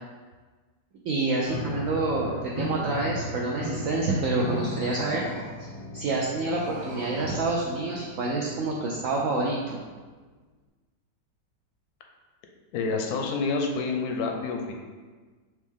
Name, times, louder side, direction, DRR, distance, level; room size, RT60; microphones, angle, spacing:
voice 1, 1.0-5.2 5.6-9.8, right 2 dB, 75° right, -3 dB, 0.7 m, -28 dB
Piano, 1.4-9.9, left 1 dB, 90° left, 1.3 m, -37 dB
sound 1, 4.5-5.8 6.3-8.0, equal, 25° right, 0.6 m, -44 dB
voice 2, 12.7-14.7, left 4 dB, 70° left, 2 dB, 0.9 m, -28 dB
4.1 x 3.1 x 3.5 m, 1.4 s
omnidirectional pair, 1.9 m